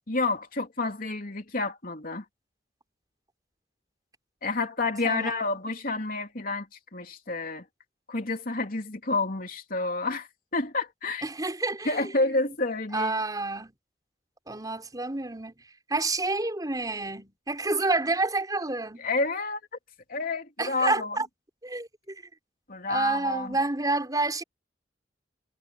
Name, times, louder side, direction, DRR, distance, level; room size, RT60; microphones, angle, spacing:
voice 1, 0.1-2.2 4.4-6.7 6.9-7.6 8.1-11.2 11.8-13.1 19.0-19.6 20.1-21.2 22.7-23.6, left 3 dB, 55° left, 3.4 m, -29 dB
voice 2, 11.2-12.0 12.9-13.7 14.5-15.5 15.9-19.1 20.6-21.3 21.6-22.2 22.9-24.4, right 2 dB, 20° right, 4.7 m, -29 dB
head